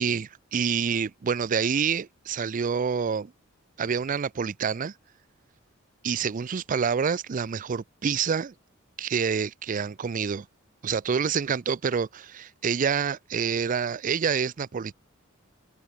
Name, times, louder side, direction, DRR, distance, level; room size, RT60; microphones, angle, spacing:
voice 1, 0.0-3.3 3.8-4.9 6.0-8.5 9.0-10.5 10.8-14.9, right 6 dB, 40° right, 0.4 m, -27 dB
head